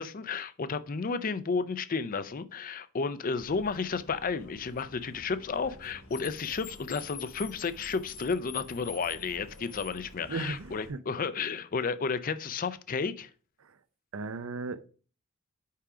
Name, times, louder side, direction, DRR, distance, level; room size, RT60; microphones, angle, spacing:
voice 1, 0.0-13.3, left 5 dB, 40° left, 0.5 m, -32 dB
Car, 3.4-10.9, left 5 dB, 70° left, 1.1 m, -47 dB
voice 2, 10.3-11.0 13.6-13.8 14.1-14.9, right 3 dB, 70° right, 0.6 m, -36 dB
5.6 x 5.0 x 4.8 m
head